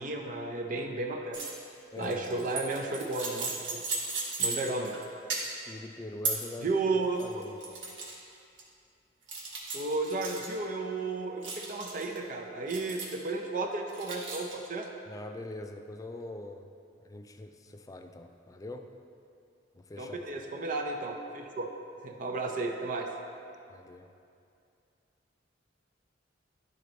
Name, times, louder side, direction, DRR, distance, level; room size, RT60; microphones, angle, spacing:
voice 1, 0.0-1.4 2.0-3.8 4.4-5.0 6.6-7.4 9.7-14.9 20.0-21.7 22.0-23.1, right 3 dB, 45° right, 2 dB, 0.5 m, -33 dB
sound 1, 1.3-1.6 2.0-5.0 5.3-5.7 6.2-6.5 7.0-8.1 8.6-8.7 9.3-10.5 11.4-12.2 12.7-13.3 13.9-14.5, right 3 dB, 85° right, 1.3 m, -36 dB
voice 2, 1.9-2.3 4.4-4.6 5.5-6.7 7.0-7.6 15.1-16.7 17.0-18.9 19.7-20.2 23.7-24.1, left 2 dB, 20° left, 6 dB, 0.3 m, -43 dB
11.5 x 3.9 x 3.2 m, 2.5 s
head